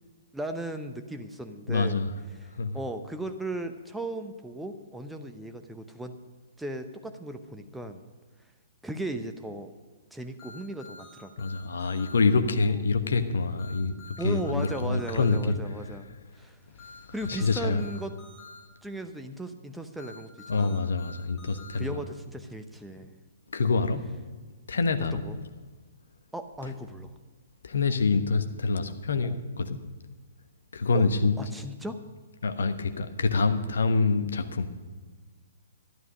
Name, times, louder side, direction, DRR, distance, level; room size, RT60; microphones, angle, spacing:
voice 1, 0.3-2.0 2.7-6.1 6.6-8.0 8.8-9.7 10.1-11.5 14.2-16.1 16.3-16.6 17.1-18.1 18.8-20.7 21.7-23.1 25.1-25.4 26.3-27.1 29.2-29.4 30.9-31.0 31.4-32.0, right 1 dB, 5° right, 7 dB, 0.8 m, -36 dB
voice 2, 1.7-2.1 2.5-2.8 11.4-16.0 17.0-17.8 20.5-22.0 23.5-24.0 24.7-25.2 27.6-29.8 30.7-31.3 32.4-34.7, left 4 dB, 65° left, 8 dB, 1.1 m, -26 dB
sound 1, 10.4-12.2 13.6-15.4 16.8-18.6 20.0-21.8, left 4 dB, 20° left, 4.5 m, -48 dB
12.0 x 11.5 x 5.2 m, 1.4 s
figure-of-eight pair, 120°, 0 cm